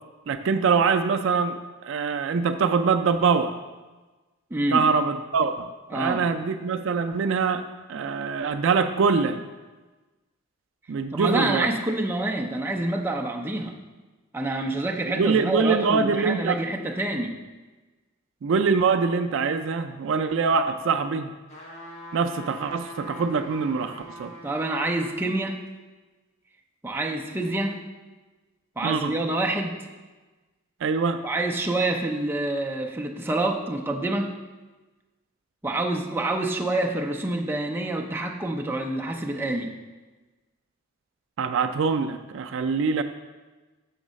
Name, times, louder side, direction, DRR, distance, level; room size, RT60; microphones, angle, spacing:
voice 1, 0.3-3.5 4.7-9.4 10.9-11.7 15.1-16.6 18.4-21.3 22.1-24.3 28.8-29.2 30.8-31.2 41.4-43.0, right 5 dB, 65° right, 8 dB, 0.4 m, -24 dB
voice 2, 4.5-4.9 5.9-6.3 11.1-13.8 14.3-17.4 24.4-25.6 26.8-27.8 28.8-29.8 31.2-34.3 35.6-39.7, right 2 dB, 10° right, 0 dB, 0.6 m, -27 dB
sound 1, 21.5-25.1 25.7-25.8, equal, 35° left, 1.2 m, -43 dB
6.4 x 3.9 x 6.2 m, 1.2 s
head